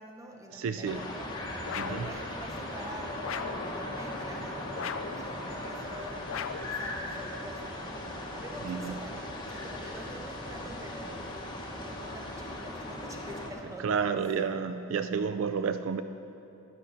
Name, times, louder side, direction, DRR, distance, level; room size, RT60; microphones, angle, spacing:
voice 1, 0.0-1.3 1.8-11.5 11.8-14.5, equal, 15° right, 1 dB, 0.7 m, -46 dB
voice 2, 0.5-1.0 1.7-2.0 8.6-9.0 13.8-16.0, right 6 dB, 65° right, 10 dB, 0.3 m, -30 dB
sound 1, 0.8-13.5, left 1 dB, 20° left, 0.9 m, -38 dB
sound 2, 1.7-2.1 3.2-3.7 4.8-5.2 6.3-6.8, left 7 dB, 65° left, 0.4 m, -37 dB
10.0 x 8.5 x 5.6 m, 2.8 s
head